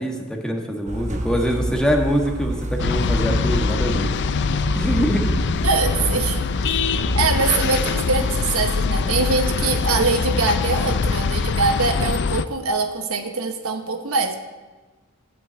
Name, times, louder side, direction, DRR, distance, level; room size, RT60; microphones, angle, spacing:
voice 1, 0.0-4.1 4.7-5.5, equal, 5° left, 1 dB, 1.5 m, -24 dB
sound 1, 0.9-7.5, right 1 dB, 35° right, 0.9 m, -29 dB
sound 2, 2.8-12.5, left 5 dB, 55° left, 0.4 m, -23 dB
voice 2, 5.6-6.8 7.2-14.4, right 3 dB, 70° right, 6 dB, 1.1 m, -23 dB
13.0 x 5.8 x 8.2 m, 1.2 s
head